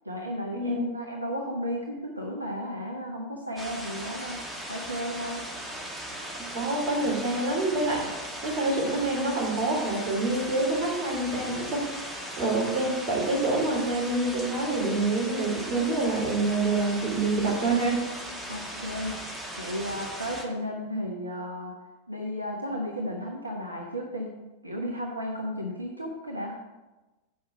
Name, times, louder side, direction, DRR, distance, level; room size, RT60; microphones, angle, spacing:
voice 1, 0.0-4.4 4.7-5.4 18.5-19.1 19.6-21.7 22.1-24.3 24.6-26.6, equal, 85° right, 0 dB, 1.1 m, -34 dB
sound 1, 3.6-20.4, right 1 dB, 10° right, 1.5 m, -38 dB
voice 2, 6.4-8.1 8.4-11.9 12.4-18.0, right 2 dB, 40° right, -2 dB, 3.3 m, -26 dB
8.5 x 5.6 x 6.0 m, 1.1 s
figure-of-eight pair, 90°, 0 cm